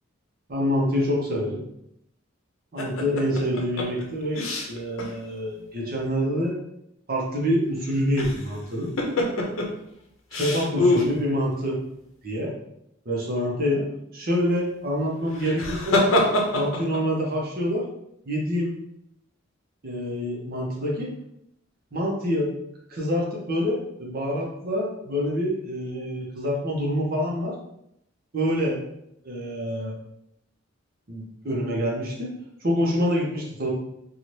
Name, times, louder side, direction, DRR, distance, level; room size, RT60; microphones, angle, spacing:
voice 1, 0.5-1.6 2.7-6.6 7.1-8.9 10.3-11.8 12.2-12.5 13.1-13.9 14.1-16.0 16.5-17.8 18.3-18.7 19.8-21.1 21.9-22.5 22.9-27.6 28.3-28.8 29.2-29.9 31.1-32.3 32.6-33.7, equal, 50° right, -3 dB, 0.8 m, -26 dB
sound 1, 2.8-5.1 5.4-5.5 7.9-8.5 9.0-9.7 10.3-11.1 15.3-17.0, left 1 dB, 90° left, 0.6 m, -24 dB
2.7 x 2.4 x 3.1 m, 0.77 s
head